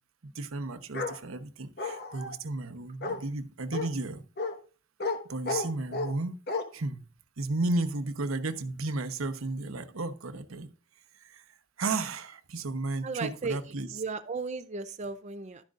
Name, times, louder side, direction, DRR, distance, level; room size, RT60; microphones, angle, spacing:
voice 1, 0.2-4.2 5.3-6.4 6.7-7.0 7.4-10.7 11.2-11.4 11.8-14.0, right 2 dB, 80° right, 0.9 m, -33 dB
Bark, 0.9-1.2 1.8-2.3 3.0-3.2 3.7-3.9 4.4-4.5 5.0-5.2 5.5-6.1 6.5-6.6, left 3 dB, 50° left, 1.4 m, -32 dB
voice 2, 13.0-13.6 13.9-15.6, right 4 dB, 35° right, 0.6 m, -35 dB
12.0 x 10.5 x 2.5 m
head